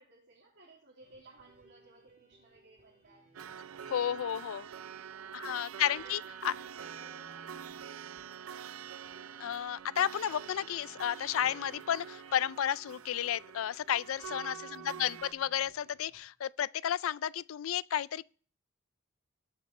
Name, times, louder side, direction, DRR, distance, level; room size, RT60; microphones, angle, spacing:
voice 1, 0.0-3.3 3.6-5.6 5.9-8.1 14.2-14.9, right 3 dB, 60° right, 2.7 m, -60 dB
sound 1, 1.0-16.2, right 2 dB, 45° right, 3.5 m, -62 dB
sound 2, 3.3-15.3, right 8 dB, 85° right, 0.4 m, -46 dB
voice 2, 3.9-4.6 5.3-6.5 9.4-18.2, left 10 dB, 75° left, 0.4 m, -32 dB
sound 3, 11.2-13.0, left 3 dB, 40° left, 3.6 m, -55 dB
20.0 x 7.0 x 3.2 m
head